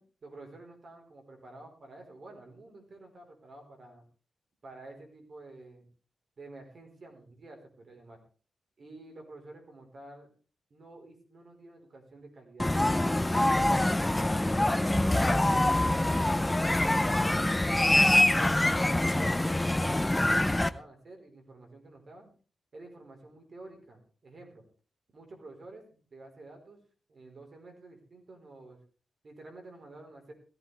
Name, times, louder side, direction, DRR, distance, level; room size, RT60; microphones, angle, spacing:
voice 1, 0.0-4.0 4.6-5.9 6.4-8.2 8.8-10.3 10.7-12.7 13.0-13.5 13.9-16.3 19.0-22.3 22.7-24.7 25.1-25.8 26.1-26.8 27.1-28.8 29.2-30.3, right 2 dB, 45° right, 3 dB, 4.3 m, -50 dB
sound 1, 12.6-20.7, left 1 dB, 10° left, 0.6 m, -25 dB
17.0 x 14.0 x 3.4 m, 0.38 s
wide cardioid pair, 140°, 0 cm